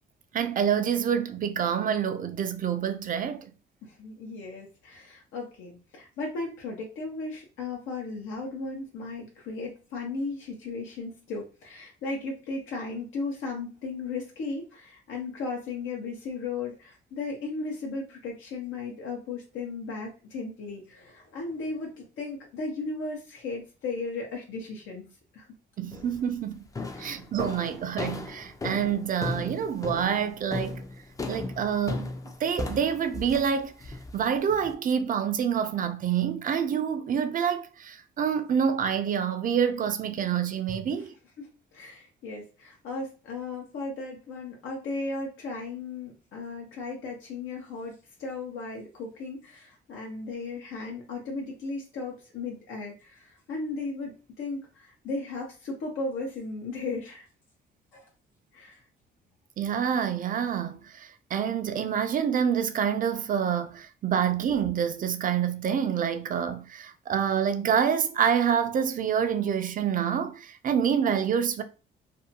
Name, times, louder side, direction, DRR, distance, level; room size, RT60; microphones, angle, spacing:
voice 1, 0.3-3.5 25.8-26.6 27.0-30.8 31.3-32.1 32.4-41.1 59.6-71.6, right 8 dB, 45° right, 0.4 m, -27 dB
voice 2, 3.8-25.1 25.3-25.5 26.9-27.3 41.4-57.3 57.9-58.1 58.5-58.8, left 3 dB, 85° left, 0.7 m, -36 dB
sound 1, 25.9-26.3 26.8-34.7, left 2 dB, 15° left, 0.4 m, -36 dB
2.6 x 2.2 x 2.7 m
cardioid pair, 90°, 20 cm